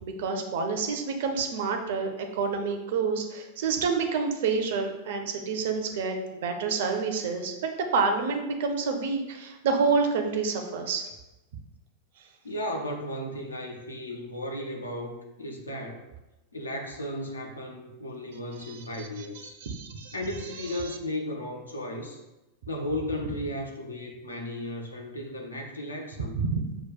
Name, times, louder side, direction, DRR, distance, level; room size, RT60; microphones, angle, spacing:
voice 1, 0.0-11.1 18.6-19.1 19.6-20.1 26.3-26.6, right 5 dB, 55° right, 4 dB, 0.4 m, -28 dB
voice 2, 12.4-16.0 16.5-19.6 20.1-22.2 22.7-26.4, left 1 dB, 75° left, 2 dB, 0.5 m, -35 dB
6.0 x 2.2 x 2.3 m, 0.99 s
figure-of-eight pair, 90°, 0 cm